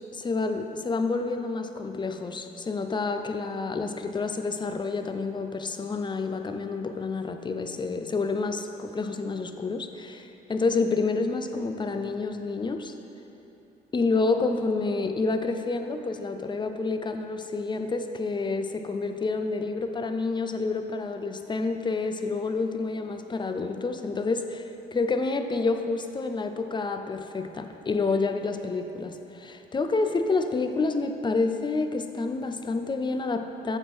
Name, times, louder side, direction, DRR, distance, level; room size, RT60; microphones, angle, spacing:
voice 1, 0.1-12.9 13.9-33.8, left 3 dB, 25° left, 7 dB, 0.4 m, -29 dB
8.0 x 3.7 x 5.9 m, 3.0 s
cardioid pair, 90°, 20 cm